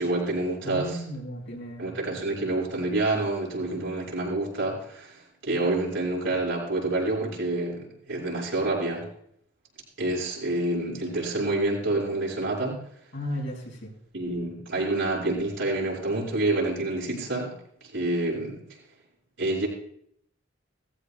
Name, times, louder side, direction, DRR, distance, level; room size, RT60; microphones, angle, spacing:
voice 1, 0.0-1.0 1.8-5.2 5.4-9.0 10.0-12.8 14.1-17.5 17.9-18.6 19.4-19.7, right 2 dB, 75° right, -4 dB, 5.7 m, -27 dB
voice 2, 0.6-1.9 13.1-13.9, equal, 70° left, -2 dB, 4.8 m, -35 dB
17.5 x 15.0 x 2.2 m, 0.67 s
head